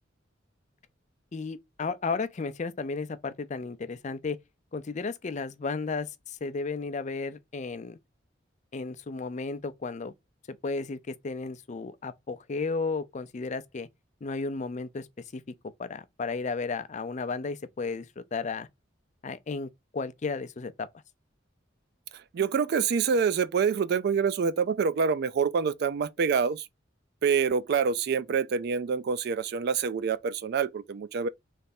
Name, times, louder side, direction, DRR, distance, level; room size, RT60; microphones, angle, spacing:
voice 1, 1.3-4.4 4.7-8.0 8.7-10.1 10.5-13.9 14.2-15.1 15.3-15.4 15.8-18.7 19.2-20.9, left 4 dB, 40° left, 0.5 m, -33 dB
voice 2, 22.3-26.6 27.2-31.3, right 6 dB, 55° right, 0.3 m, -26 dB
3.3 x 3.3 x 4.1 m
head